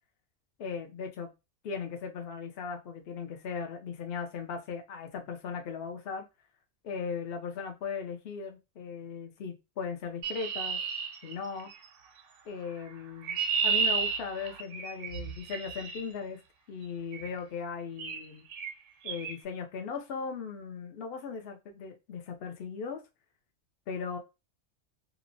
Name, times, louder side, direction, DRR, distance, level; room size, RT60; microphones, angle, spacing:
voice 1, 0.6-1.3 1.6-6.3 6.8-10.8 11.2-11.7 12.5-13.4 13.6-16.4 16.7-18.4 19.0-23.0 23.9-24.2, left 6 dB, 55° left, 0.8 m, -38 dB
Chirp tweet, 10.2-11.9 12.9-16.0 17.1-17.4 18.0-18.3 18.5-18.7 19.1-19.3, right 6 dB, 75° right, 0.9 m, -32 dB
2.9 x 2.1 x 2.5 m
omnidirectional pair, 1.3 m